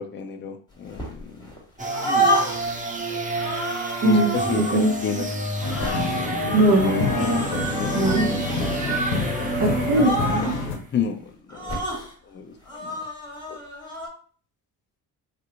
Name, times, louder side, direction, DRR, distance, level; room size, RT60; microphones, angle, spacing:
voice 1, 0.0-1.5 2.0-2.4 3.1-3.2 4.0-5.3 7.6-8.1 10.0-10.1 10.9-11.8 12.3-13.0 13.5-13.6, left 7 dB, 25° left, 7 dB, 0.5 m, -31 dB
sound 1, 0.9-1.6 1.9-2.8 3.4-4.8 5.7-9.2 9.5-9.7 9.9-10.7 11.5-12.1 12.7-14.1, right 1 dB, 10° left, 1.4 m, -29 dB
sound 2, 1.8-10.7, right 2 dB, 15° right, 0.8 m, -30 dB
voice 2, 4.0-4.9 6.5-7.5 7.9-8.3 9.6-10.4, right 1 dB, 40° right, 1 dB, 1.2 m, -21 dB
sound 3, 5.6-10.8, left 3 dB, 80° left, 0.9 m, -28 dB
3.4 x 2.7 x 2.6 m, 0.43 s
hypercardioid pair, 55°, 48 cm